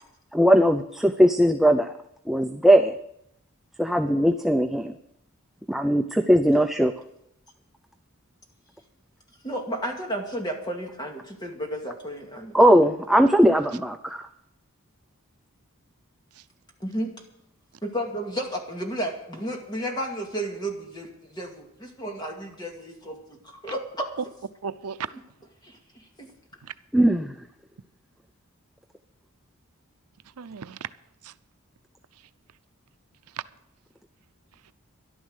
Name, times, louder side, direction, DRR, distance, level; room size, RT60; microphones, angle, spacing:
voice 1, 0.3-1.9 2.3-2.9 3.8-4.9 5.7-6.9 12.5-14.3 26.9-27.4, equal, ahead, 5 dB, 0.5 m, -19 dB
voice 2, 9.4-12.6 16.8-17.1 17.8-24.1 25.6-26.3, equal, 20° left, 2 dB, 2.1 m, -33 dB
voice 3, 24.6-25.1 26.6-26.7 30.2-30.9 31.2-31.3 32.1-32.3 33.3-33.4 34.5-34.7, right 7 dB, 85° right, 13 dB, 0.6 m, -36 dB
13.0 x 11.5 x 6.4 m, 0.76 s
head